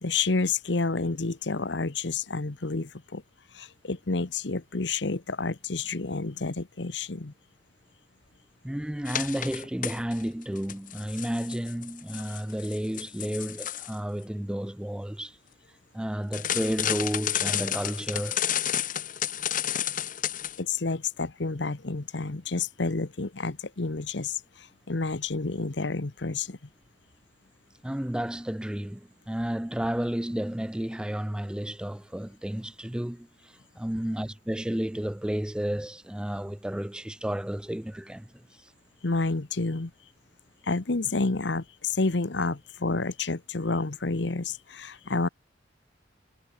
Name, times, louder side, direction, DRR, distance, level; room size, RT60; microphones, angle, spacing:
voice 1, 0.0-3.2 3.5-7.3 20.6-26.6 39.0-39.9 40.6-45.3, left 3 dB, 65° left, 1.1 m, -29 dB
voice 2, 8.6-15.4 15.9-18.4 27.8-38.7, equal, 5° right, 0.3 m, -32 dB
sound 1, 9.1-10.2 10.6-13.9 16.3-20.6, left 10 dB, 45° left, 1.3 m, -31 dB
head